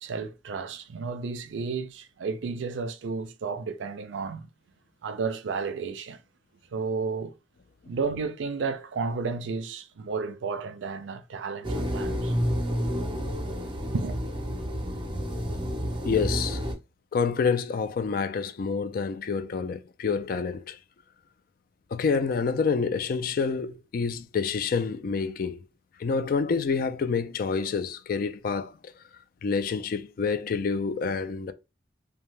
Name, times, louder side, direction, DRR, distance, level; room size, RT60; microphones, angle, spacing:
voice 1, 0.0-4.5 5.0-6.2 6.7-7.3 7.9-12.4 13.9-14.2, right 4 dB, 85° right, 0.4 m, -32 dB
sound 1, 11.6-16.7, equal, 25° right, 0.5 m, -30 dB
voice 2, 16.0-16.6 17.1-20.8 21.9-25.6 26.0-28.7 29.4-31.5, left 5 dB, 50° left, 0.3 m, -27 dB
2.7 x 2.1 x 3.2 m
head